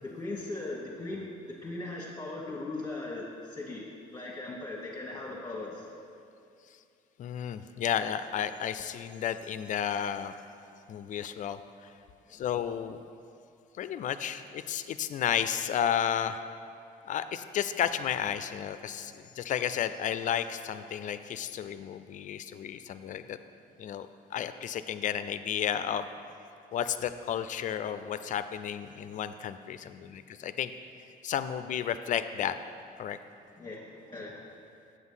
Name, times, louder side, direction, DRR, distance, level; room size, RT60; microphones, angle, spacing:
voice 1, 0.0-3.8 4.1-5.8 12.3-12.4 33.6-34.5, left 2 dB, 20° left, -4 dB, 1.2 m, -39 dB
voice 2, 7.2-10.3 10.9-11.6 12.3-13.0 13.8-16.4 17.0-23.4 23.8-26.1 26.7-30.7 31.2-32.6 33.0-33.2, left 9 dB, 50° left, 11 dB, 0.4 m, -32 dB
8.0 x 6.2 x 5.6 m, 2.5 s
cardioid pair, 110°, 17 cm